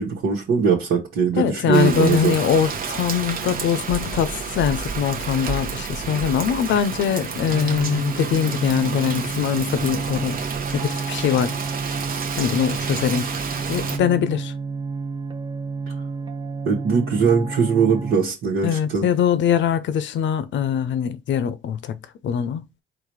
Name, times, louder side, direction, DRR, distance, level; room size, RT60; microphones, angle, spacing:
voice 1, 0.0-2.4 16.6-19.0, right 6 dB, 85° right, 1.3 m, -21 dB
voice 2, 1.4-10.4 10.7-11.5 12.4-13.3 13.7-14.5 18.6-22.0 22.2-22.6, left 8 dB, 70° left, 0.6 m, -22 dB
Rain, 1.7-14.0, right 5 dB, 45° right, 0.9 m, -30 dB
sound 1, 7.5-18.2, right 4 dB, 25° right, 0.7 m, -30 dB
4.0 x 2.5 x 4.6 m
cardioid pair, 90°, 20 cm